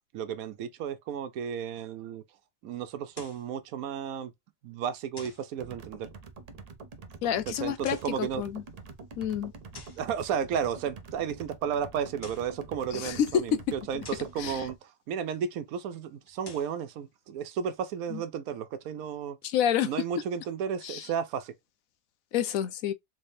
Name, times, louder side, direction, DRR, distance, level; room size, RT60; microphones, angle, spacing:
voice 1, 0.1-2.2 2.6-4.3 4.6-6.1 7.5-8.4 10.0-19.4 19.8-21.5, right 8 dB, 85° right, 1.1 m, -33 dB
sound 1, 3.1-3.5 5.2-5.5 7.7-8.2 9.7-10.1 12.0-12.6 14.0-14.4 16.3-16.8, left 3 dB, 30° left, 0.5 m, -48 dB
sound 2, 5.6-14.8, right 4 dB, 55° right, 0.4 m, -46 dB
voice 2, 7.2-8.6 9.2-9.5 12.9-13.6 13.9-14.0 14.4-14.6 18.1-18.2 19.4-19.9 20.8-21.1 22.3-22.9, left 9 dB, 75° left, 1.0 m, -28 dB
3.6 x 3.4 x 2.6 m
omnidirectional pair, 1.5 m